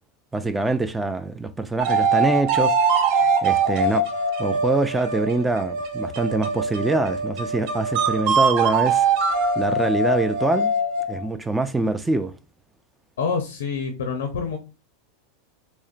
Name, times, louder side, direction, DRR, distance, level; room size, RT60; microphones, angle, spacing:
voice 1, 0.3-2.7 3.4-4.1 4.4-9.1 9.6-10.7 11.1-12.3, right 2 dB, 10° right, 0.3 m, -24 dB
sound 1, 1.8-11.2, right 3 dB, 55° right, 0.6 m, -22 dB
voice 2, 13.2-14.6, left 5 dB, 75° left, 0.5 m, -26 dB
3.6 x 2.1 x 2.4 m
hypercardioid pair, 90°, 0 cm